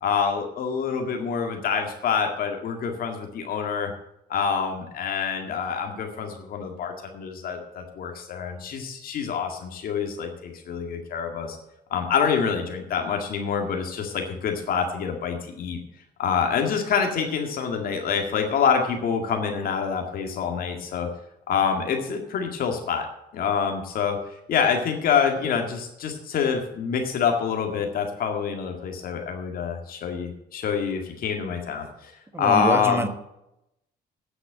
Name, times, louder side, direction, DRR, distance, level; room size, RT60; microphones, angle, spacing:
voice 1, 0.0-3.9 4.3-11.6 11.9-15.8 16.2-21.1 21.5-23.1 23.3-24.2 24.5-32.1 32.4-33.1, left 6 dB, 60° left, 3 dB, 2.0 m, -26 dB
voice 2, 32.3-33.1, right 2 dB, 15° right, 10 dB, 1.2 m, -25 dB
9.3 x 7.8 x 8.6 m, 0.85 s
cardioid pair, 110°, 17 cm